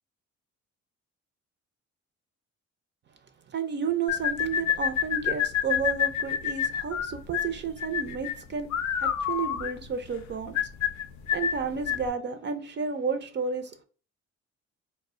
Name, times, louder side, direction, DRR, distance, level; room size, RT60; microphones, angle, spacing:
voice 1, 3.5-8.7 9.0-10.6 11.3-13.8, right 6 dB, 40° right, 0.4 m, -32 dB
sound 1, 4.1-12.1, left 9 dB, 70° left, 0.4 m, -28 dB
2.1 x 2.1 x 3.6 m
cardioid pair, 90°, 30 cm